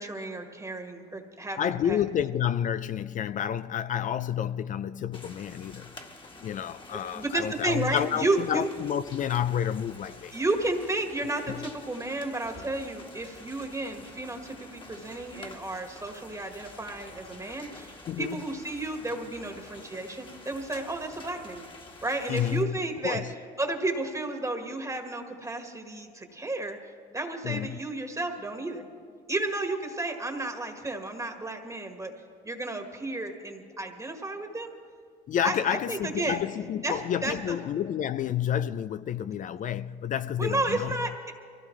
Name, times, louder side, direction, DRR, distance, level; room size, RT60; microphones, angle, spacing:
voice 1, 0.0-2.0 7.1-8.7 10.3-21.6 22.0-23.2 23.6-26.8 27.1-28.8 29.3-32.1 32.4-34.7 35.4-36.4 36.8-37.6 40.4-41.3, right 2 dB, 15° right, 1.6 m, -32 dB
voice 2, 1.6-5.9 6.4-10.4 11.5-11.7 18.1-18.4 22.3-22.8 23.0-23.3 27.4-27.8 35.3-41.0, left 9 dB, 45° left, 0.4 m, -30 dB
sound 1, 5.1-22.6, left 2 dB, 25° left, 1.6 m, -48 dB
23.5 x 16.0 x 3.2 m
supercardioid pair, 75°, 19 cm